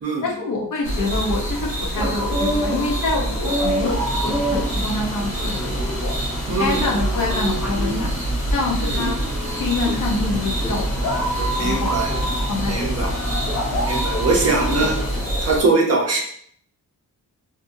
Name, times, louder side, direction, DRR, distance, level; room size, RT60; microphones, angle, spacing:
voice 1, 0.2-6.1 6.6-8.1 8.5-9.1 9.5-12.2 12.5-13.2 14.6-15.1, left 3 dB, 65° left, -2 dB, 0.8 m, -26 dB
sound 1, 0.8-15.6, right 1 dB, 35° left, 1.3 m, -24 dB
sound 2, 3.8-15.2, equal, ahead, 0.6 m, -34 dB
voice 2, 6.5-6.8 11.6-12.1 12.7-13.1 13.9-14.9 15.4-16.2, right 3 dB, 45° right, -1 dB, 0.7 m, -21 dB
sound 3, 7.8-8.3 9.0-9.1 9.8-10.0 10.6-10.7 11.4-11.5 12.1-12.2 12.8-12.9 13.5-13.6 14.1-14.2 14.8-14.9, left 1 dB, 15° left, 1.1 m, -31 dB
2.7 x 2.6 x 2.5 m, 0.63 s
wide cardioid pair, 175°, 35 cm